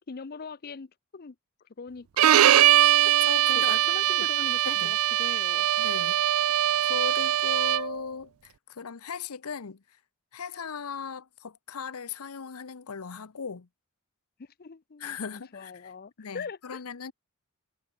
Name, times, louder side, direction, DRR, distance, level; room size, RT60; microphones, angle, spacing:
voice 1, 0.1-1.3 1.8-2.6 3.6-5.7 14.6-16.8, left 5 dB, 45° left, 0.6 m, -41 dB
Bowed string instrument, 2.2-8.0, right 13 dB, 75° right, 0.4 m, -22 dB
voice 2, 3.0-3.8 4.2-4.3 4.6-5.0 5.8-6.2 6.8-9.8 10.3-13.7 15.0-15.9 16.2-17.1, left 6 dB, 90° left, 0.8 m, -38 dB
head